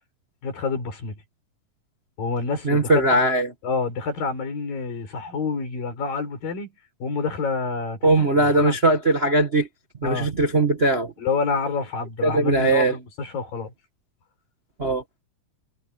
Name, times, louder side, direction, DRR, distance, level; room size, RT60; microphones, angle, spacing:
voice 1, 0.4-1.2 2.2-3.2 3.6-6.7 7.0-8.8 10.0-10.3 11.2-13.7, left 4 dB, 90° left, 7.0 m, -28 dB
voice 2, 2.6-3.5 8.0-9.7 10.0-11.1 12.2-12.9 14.8-15.0, right 2 dB, 40° right, 0.9 m, -20 dB
omnidirectional pair, 3.9 m